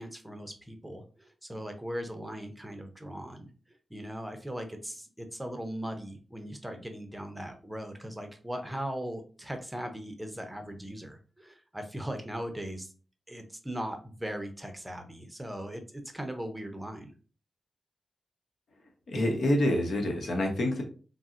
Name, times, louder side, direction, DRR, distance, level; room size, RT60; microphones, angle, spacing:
voice 1, 0.0-3.5 3.9-12.9 13.3-17.1, equal, 10° right, 5 dB, 0.6 m, -39 dB
voice 2, 19.1-20.8, left 1 dB, 80° left, 2 dB, 0.8 m, -27 dB
3.8 x 2.0 x 2.4 m, 0.38 s
cardioid pair, 75°, 0 cm